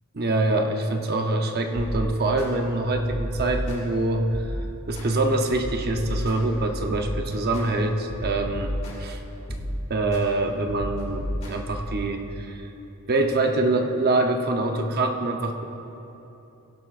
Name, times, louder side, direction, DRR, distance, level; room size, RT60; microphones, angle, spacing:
voice 1, 0.1-4.3 4.9-9.2 9.9-12.7 13.1-15.6, right 2 dB, 45° right, 4 dB, 0.8 m, -25 dB
sound 1, 1.7-2.5 2.9-4.0 4.3-5.1 5.5-7.6 8.1-9.1 9.5-10.2 10.7-12.1, equal, 30° left, 2.3 m, -32 dB
17.0 x 11.5 x 2.5 m, 3.0 s
head